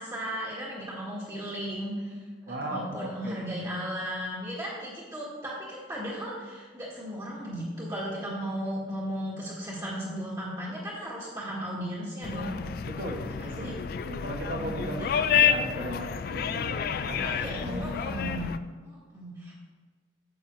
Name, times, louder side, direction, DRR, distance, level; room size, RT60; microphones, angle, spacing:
voice 1, 0.0-2.2 2.4-12.6 13.4-13.7 14.5-15.1 17.2-18.5 18.8-19.6, equal, 20° right, -7 dB, 1.4 m, -36 dB
voice 2, 2.5-3.4 12.8-18.1, right 1 dB, 60° right, 1 dB, 1.0 m, -37 dB
sound 1, 12.2-18.6, left 7 dB, 55° left, 0.3 m, -29 dB
9.1 x 7.2 x 3.1 m, 1.4 s
head